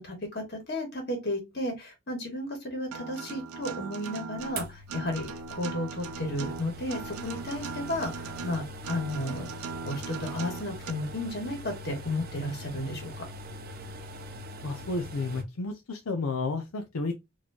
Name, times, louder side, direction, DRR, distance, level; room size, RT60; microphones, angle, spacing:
voice 1, 0.0-9.5 9.8-13.2, left 1 dB, 45° left, 1.9 m, -33 dB
Acoustic guitar, 2.9-10.9, right 5 dB, 85° right, 0.5 m, -39 dB
sound 1, 4.6-15.4, equal, 45° right, 0.6 m, -42 dB
voice 2, 14.6-17.1, left 3 dB, 80° left, 0.6 m, -32 dB
4.2 x 3.1 x 2.8 m
head